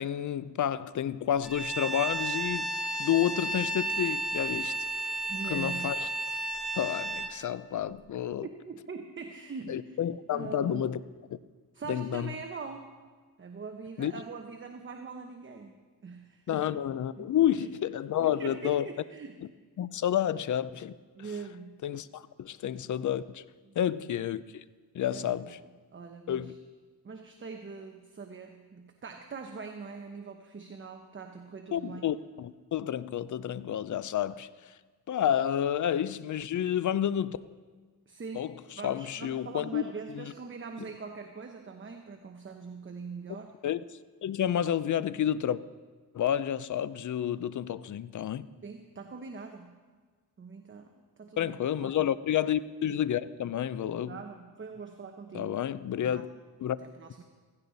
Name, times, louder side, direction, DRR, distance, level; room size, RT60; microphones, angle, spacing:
voice 1, 0.0-2.7 3.0-4.7 5.5-6.1 6.7-8.5 9.7-11.0 11.3-11.4 11.9-12.3 14.0-14.1 16.5-18.9 19.8-20.9 21.8-23.4 23.8-24.4 24.9-25.6 26.3-26.5 31.7-34.7 35.1-37.4 38.3-38.5 38.8-39.8 40.1-40.3 43.6-43.8 44.2-45.6 46.1-48.5 51.4-54.2 55.3-56.3 56.6-56.8, left 10 dB, 50° left, 0.6 m, -30 dB
Bowed string instrument, 1.4-7.3, right 2 dB, ahead, 1.2 m, -33 dB
voice 2, 5.3-5.9 8.4-10.0 10.3-10.9 11.7-12.9 13.4-15.7 16.0-16.8 17.2-17.7 18.2-19.4 21.1-21.8 23.7-24.0 25.1-25.5 25.9-26.6 27.0-32.1 38.1-43.5 48.6-49.8 50.4-51.9 54.0-55.6 56.0-56.2 56.8-57.2, right 5 dB, 30° right, 1.0 m, -43 dB
16.5 x 15.5 x 4.1 m
cardioid pair, 105°, 38 cm